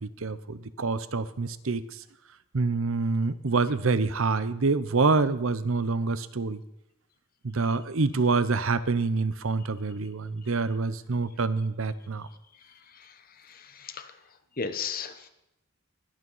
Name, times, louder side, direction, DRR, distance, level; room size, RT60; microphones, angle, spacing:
voice 1, 0.0-2.0 2.5-6.6 7.4-12.3, right 4 dB, 70° right, 15 dB, 0.7 m, -26 dB
voice 2, 12.6-14.2 14.6-15.3, left 5 dB, 40° left, 9 dB, 1.1 m, -37 dB
21.5 x 9.0 x 5.6 m, 0.84 s
head